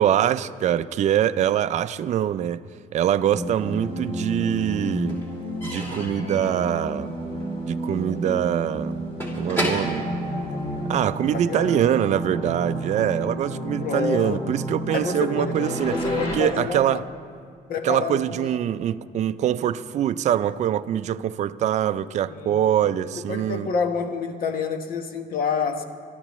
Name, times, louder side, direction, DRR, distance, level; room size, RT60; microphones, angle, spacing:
voice 1, 0.0-2.6 2.9-5.2 5.6-7.1 7.7-9.0 9.4-10.1 10.9-16.0 16.3-17.1 17.8-23.7, right 10 dB, 45° right, 12 dB, 0.4 m, -24 dB
sound 1, 3.3-16.4, equal, 35° left, 3.7 m, -31 dB
Slam / Squeak / Wood, 3.4-4.2 4.4-11.2, equal, 15° left, 3.0 m, -34 dB
voice 2, 11.3-11.9 13.8-14.6 14.9-17.0 17.7-18.6 22.3-22.7 23.2-25.8, left 5 dB, 60° left, 6 dB, 1.2 m, -28 dB
25.0 x 12.5 x 3.1 m, 2.1 s
cardioid pair, 110°, 17 cm